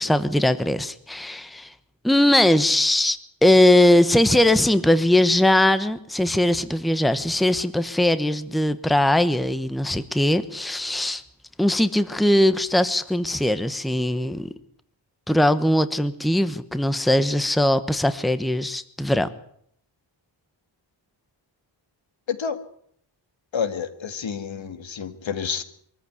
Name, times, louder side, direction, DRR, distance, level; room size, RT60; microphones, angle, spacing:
voice 1, 0.0-1.7 2.0-11.2 11.6-14.5 15.3-19.3, left 1 dB, ahead, 12 dB, 1.1 m, -20 dB
voice 2, 22.3-22.6 23.5-25.6, left 6 dB, 75° left, 11 dB, 2.0 m, -29 dB
23.5 x 14.0 x 9.5 m, 0.67 s
wide cardioid pair, 155°, 46 cm